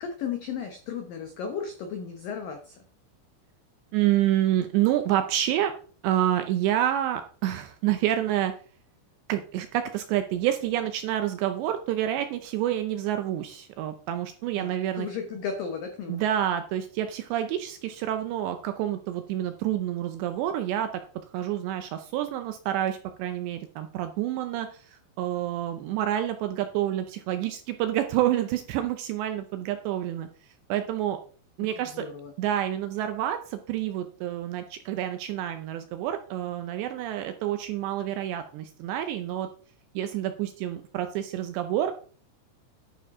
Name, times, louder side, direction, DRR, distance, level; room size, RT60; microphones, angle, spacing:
voice 1, 0.0-2.8 14.5-16.2 31.6-32.3, left 6 dB, 90° left, 5 dB, 1.9 m, -35 dB
voice 2, 3.9-5.7 6.0-8.5 9.3-15.1 16.1-20.9 21.3-30.3 30.7-31.2 31.6-32.1 32.4-39.5 40.0-41.9, right 12 dB, 80° right, 8 dB, 2.6 m, -28 dB
11.5 x 8.8 x 3.6 m, 0.43 s
omnidirectional pair, 5.7 m